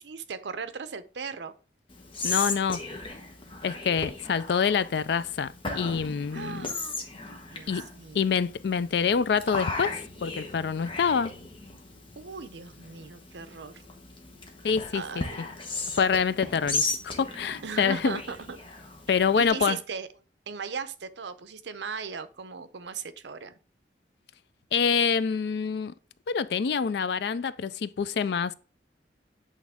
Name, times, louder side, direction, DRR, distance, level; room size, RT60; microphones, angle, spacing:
voice 1, 0.0-1.6 6.3-7.0 7.5-8.4 12.2-13.8 14.9-15.6 17.6-18.6 19.1-20.1 20.5-23.5, right 5 dB, 75° right, 0.6 m, -38 dB
Whispering, 1.9-19.5, left 3 dB, 30° left, 1.1 m, -36 dB
voice 2, 2.2-2.8 3.6-6.7 7.7-7.8 8.1-11.3 14.6-15.2 16.0-18.2 19.1-19.8 24.7-25.9 26.3-28.5, left 6 dB, 65° left, 0.4 m, -26 dB
8.3 x 3.6 x 3.5 m
head